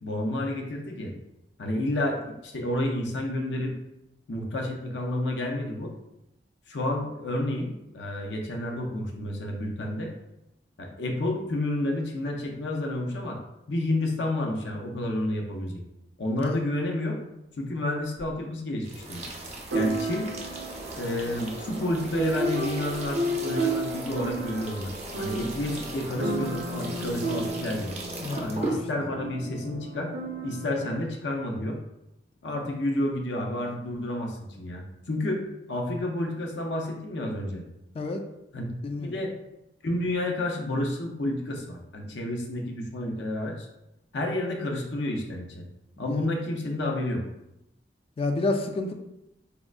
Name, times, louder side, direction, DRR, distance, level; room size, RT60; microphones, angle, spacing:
voice 1, 0.0-1.1 1.6-3.7 4.3-5.9 6.7-10.1 10.8-13.4 13.7-15.8 16.2-17.2 17.6-19.2 19.7-20.3 20.9-27.9 28.4-30.1 30.4-31.8 32.4-35.4 35.7-37.6 38.5-38.7 39.0-39.3 39.8-43.7 44.1-45.6 46.0-47.2, left 1 dB, 85° left, 1 dB, 0.6 m, -30 dB
sound 1, 18.2-18.3 19.7-30.9, right 2 dB, 90° right, 0.5 m, -33 dB
sound 2, 18.8-28.8, right 2 dB, 40° right, 0.5 m, -38 dB
voice 2, 28.2-28.5 37.9-38.2 38.8-39.2 46.0-46.2 48.2-48.9, left 2 dB, 35° left, 5 dB, 0.3 m, -29 dB
3.6 x 2.1 x 2.4 m, 0.88 s
head